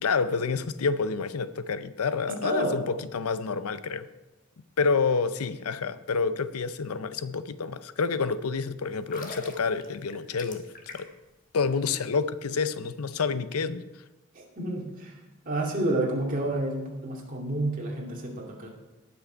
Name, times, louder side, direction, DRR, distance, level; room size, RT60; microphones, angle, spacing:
voice 1, 0.0-4.1 4.8-11.1 11.5-13.9, left 5 dB, 80° left, 14 dB, 0.6 m, -28 dB
voice 2, 2.3-2.8 14.3-15.1 15.5-18.7, right 1 dB, 40° right, -2 dB, 2.4 m, -30 dB
sound 1, 9.0-11.3 11.6-11.8, left 3 dB, 40° left, 1.4 m, -42 dB
18.0 x 6.3 x 4.5 m, 1.0 s
head